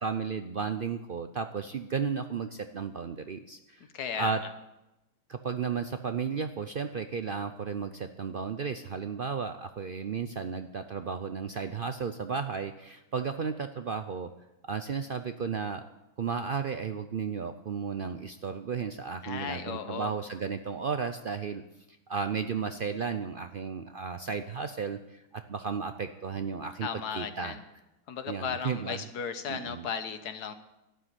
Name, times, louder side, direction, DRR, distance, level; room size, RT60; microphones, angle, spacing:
voice 1, 0.0-3.8 4.2-4.4 5.3-14.3 14.7-15.8 16.2-21.6 22.1-27.6 28.3-29.0 29.5-29.9, right 6 dB, 60° right, 9 dB, 0.6 m, -34 dB
voice 2, 3.9-4.5 19.2-20.1 26.8-27.6 28.1-30.5, left 7 dB, 85° left, 10 dB, 1.6 m, -35 dB
12.5 x 8.9 x 9.5 m, 0.95 s
omnidirectional pair, 1.6 m